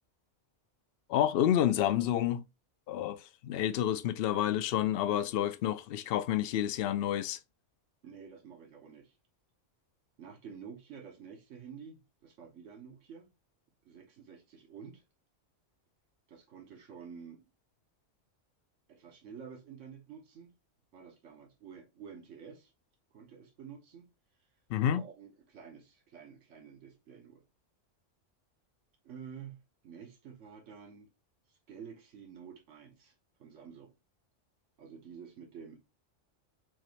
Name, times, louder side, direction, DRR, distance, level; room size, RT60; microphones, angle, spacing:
voice 1, 1.1-2.4 2.9-7.4 24.7-25.0, left 11 dB, 65° left, 0.6 m, -29 dB
voice 2, 8.0-9.1 10.2-13.3 13.8-15.0 16.3-17.4 18.9-20.5 20.9-22.7 23.1-24.1 24.9-27.4 29.0-31.1 31.5-33.1 33.4-33.9 34.8-35.8, right 7 dB, 75° right, 1.5 m, -50 dB
6.0 x 2.5 x 3.1 m
omnidirectional pair, 1.3 m